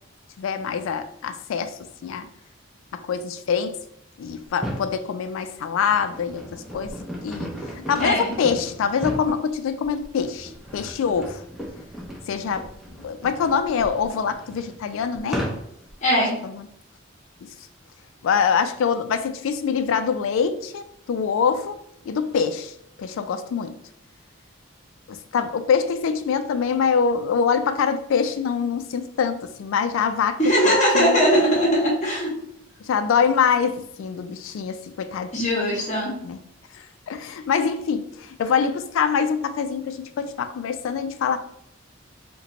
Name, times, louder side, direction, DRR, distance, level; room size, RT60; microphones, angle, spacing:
voice 1, 0.4-2.3 2.9-3.8 4.2-6.9 7.2-11.4 12.3-12.7 13.0-15.5 16.4-16.6 17.4-17.5 18.2-21.8 22.1-23.8 25.1-30.4 30.6-31.2 32.8-35.3 36.2-36.4 37.1-41.4, left 6 dB, 75° left, 0.3 m, -24 dB
sound 1, 4.4-4.9 5.6-15.9, equal, ahead, 0.5 m, -36 dB
voice 2, 8.0-8.4 16.0-16.4 30.4-32.4 35.3-36.1, equal, 35° left, 0.8 m, -20 dB
2.8 x 2.2 x 3.8 m
head